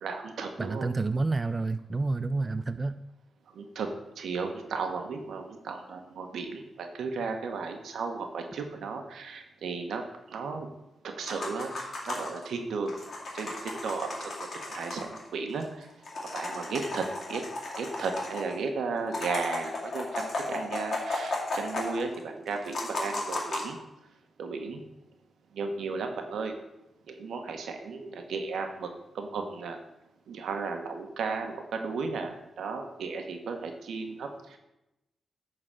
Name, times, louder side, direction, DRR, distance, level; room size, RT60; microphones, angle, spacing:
voice 1, 0.0-0.9 3.5-3.9 4.1-10.7 11.0-11.7 12.0-13.0 13.3-14.3 14.7-15.9 16.3-17.4 17.8-23.8 24.4-24.8 25.5-26.5 27.1-28.9 29.1-29.8 30.3-32.3 32.6-34.6, right 4 dB, 85° right, 5 dB, 1.2 m, -34 dB
voice 2, 0.6-3.0, right 3 dB, 30° right, 11 dB, 0.3 m, -29 dB
sound 1, 11.2-12.5 12.9-15.2 15.6-15.7 15.9-18.6 19.0-22.2 22.5-23.7, left 2 dB, 60° left, 2.3 m, -35 dB
9.0 x 4.0 x 6.6 m, 0.91 s
cardioid pair, 85°, 0 cm